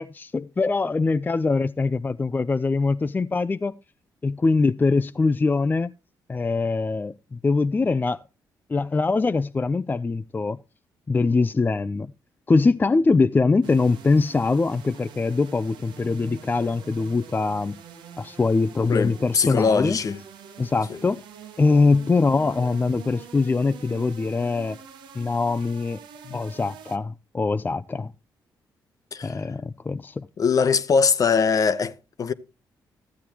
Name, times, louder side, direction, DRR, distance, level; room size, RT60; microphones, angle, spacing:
voice 1, 0.0-3.7 4.2-5.9 6.3-8.2 8.7-10.6 11.1-12.1 12.5-17.8 18.2-20.0 20.6-21.2 21.6-24.8 25.2-26.0 26.3-28.1 29.2-30.3, left 3 dB, 25° left, 0.4 m, -23 dB
sound 1, 13.6-27.0, right 8 dB, 85° right, 1.2 m, -45 dB
voice 2, 18.8-20.2 20.9-21.0 26.2-26.4 29.1-29.4 30.4-32.3, left 5 dB, 50° left, 0.8 m, -22 dB
13.5 x 8.3 x 3.0 m
cardioid pair, 75°, 8 cm